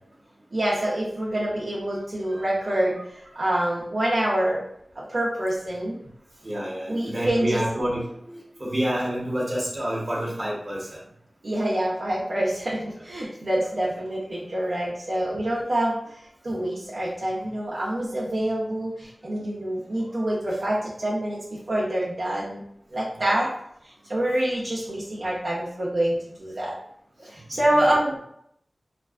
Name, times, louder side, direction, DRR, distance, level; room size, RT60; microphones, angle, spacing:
voice 1, 0.5-4.6 5.0-6.0 6.9-7.6 11.4-16.0 16.4-21.4 21.7-22.6 22.9-23.5 24.1-26.8 27.2-28.2, right 1 dB, 70° right, -7 dB, 0.6 m, -26 dB
voice 2, 6.4-11.0 20.1-20.3 23.2-23.5 27.5-28.0, right 1 dB, 40° right, -4 dB, 0.9 m, -29 dB
2.5 x 2.2 x 2.3 m, 0.71 s
wide cardioid pair, 45°, 0 cm